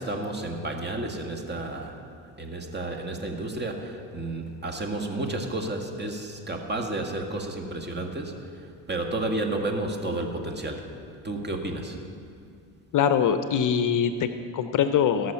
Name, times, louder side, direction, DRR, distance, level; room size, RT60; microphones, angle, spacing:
voice 1, 0.0-2.0 2.4-10.9 11.2-12.0, right 2 dB, 25° right, 3 dB, 1.8 m, -31 dB
voice 2, 12.9-15.3, left 8 dB, 50° left, 10 dB, 0.7 m, -23 dB
18.0 x 6.4 x 5.7 m, 2.3 s
supercardioid pair, 75°, 42 cm